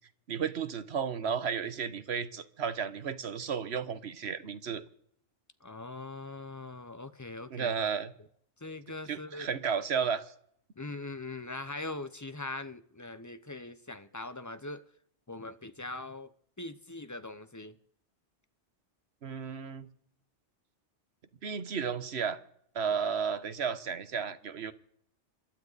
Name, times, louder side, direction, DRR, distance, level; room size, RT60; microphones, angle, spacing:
voice 1, 0.3-4.8 7.5-8.1 9.1-10.2 19.2-19.9 21.4-22.4 22.7-24.7, right 7 dB, 65° right, 1.3 m, -33 dB
voice 2, 5.6-7.8 8.6-9.5 10.8-14.8 15.3-16.3 16.6-17.8, left 2 dB, 20° left, 0.7 m, -41 dB
27.0 x 12.0 x 4.0 m
omnidirectional pair, 1.2 m